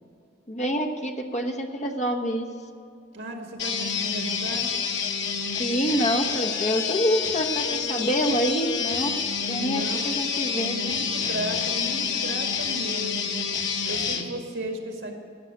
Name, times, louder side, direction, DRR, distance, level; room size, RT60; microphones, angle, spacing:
voice 1, 0.5-2.4 5.6-10.8, equal, 35° left, 3 dB, 1.1 m, -27 dB
voice 2, 3.1-4.7 9.4-10.0 10.5-13.5 13.9-15.2, right 1 dB, 80° right, 3 dB, 2.0 m, -35 dB
sound 1, 3.6-14.3, left 6 dB, 80° left, 1.2 m, -28 dB
16.0 x 6.5 x 8.6 m, 2.4 s
head